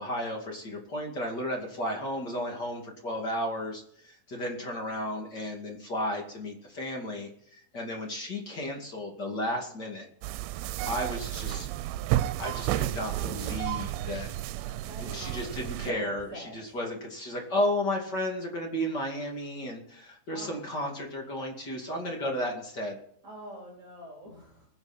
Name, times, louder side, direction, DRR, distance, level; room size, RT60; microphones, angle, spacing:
voice 1, 0.0-10.1 10.8-11.7 12.4-14.3 15.0-23.0, left 1 dB, 35° left, 0 dB, 2.0 m, -33 dB
sound 1, 10.2-15.9, right 14 dB, 85° right, 3.1 m, -32 dB
voice 2, 13.9-16.6 20.3-20.5 23.2-24.7, right 1 dB, 20° right, -2 dB, 3.3 m, -45 dB
22.0 x 8.9 x 4.4 m, 0.64 s
omnidirectional pair, 5.6 m